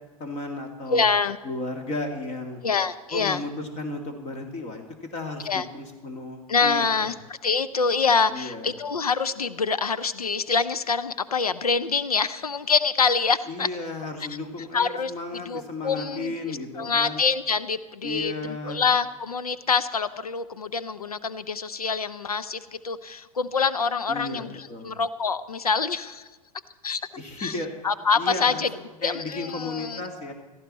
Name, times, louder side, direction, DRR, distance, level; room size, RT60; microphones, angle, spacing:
voice 1, 0.2-1.1 1.4-2.6 3.1-4.8 5.1-7.1 8.3-8.7 13.5-17.2 18.0-18.8 24.1-24.4 24.7-24.9 27.2-27.7 28.2-30.3, left 2 dB, 35° left, 5 dB, 2.1 m, -34 dB
voice 2, 0.9-1.4 2.6-3.4 5.4-5.7 6.5-13.7 14.3-14.4 14.7-26.3 26.8-27.0 27.4-27.6 27.8-28.7 29.0-30.0 30.3-30.4, left 5 dB, 90° left, 14 dB, 0.6 m, -25 dB
17.0 x 14.0 x 4.2 m, 1.3 s
hypercardioid pair, 90°, 19 cm